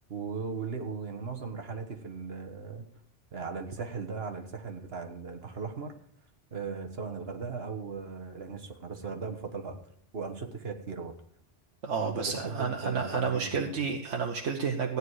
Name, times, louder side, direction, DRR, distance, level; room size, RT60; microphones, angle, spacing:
voice 1, 0.1-2.9 3.3-5.9 6.5-9.8 10.1-11.1 12.0-13.7, right 5 dB, 60° right, 4 dB, 1.6 m, -38 dB
voice 2, 11.8-15.0, right 5 dB, 85° right, 1 dB, 1.3 m, -30 dB
15.0 x 9.5 x 4.8 m, 0.64 s
omnidirectional pair, 1.2 m